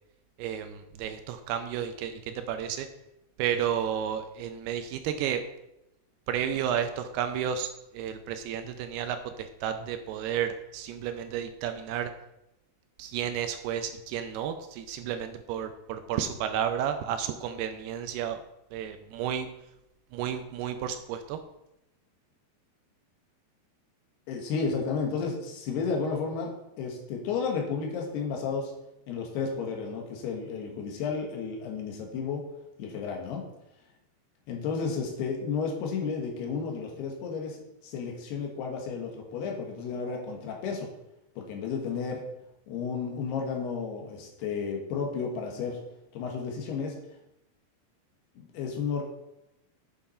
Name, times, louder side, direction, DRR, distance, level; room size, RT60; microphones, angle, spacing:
voice 1, 0.4-2.9 3.4-5.4 6.3-7.7 7.9-12.1 13.0-18.4 18.7-19.5 20.1-21.4, right 9 dB, 80° right, 8 dB, 2.5 m, -32 dB
voice 2, 24.3-28.7 29.1-32.4 32.8-33.4 34.5-40.9 41.4-42.2 42.7-45.8 46.1-46.9 48.4-49.0, left 5 dB, 75° left, 1 dB, 3.3 m, -32 dB
9.4 x 6.9 x 4.3 m, 0.88 s
omnidirectional pair, 4.8 m